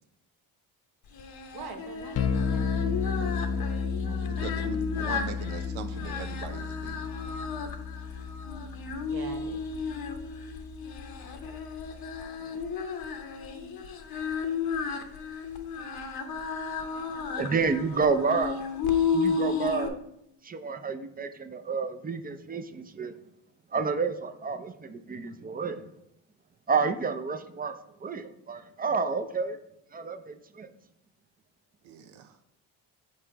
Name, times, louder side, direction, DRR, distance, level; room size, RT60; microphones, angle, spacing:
Singing, 1.1-19.9, left 5 dB, 50° left, 0.9 m, -33 dB
voice 1, 1.5-3.6 4.0-4.4 9.1-9.6, right 5 dB, 50° right, 3 dB, 1.1 m, -44 dB
sound 1, 2.1-12.2, left 6 dB, 35° left, 0.5 m, -33 dB
voice 2, 4.3-7.1 12.4-12.6 31.8-32.3, right 7 dB, 80° right, 7 dB, 0.6 m, -41 dB
voice 3, 17.4-18.7 19.1-20.0 20.4-23.1 23.7-25.8 26.7-29.6 29.9-30.7, right 5 dB, 20° right, 9 dB, 0.5 m, -30 dB
5.6 x 3.8 x 4.5 m, 0.78 s
supercardioid pair, 65°, 47 cm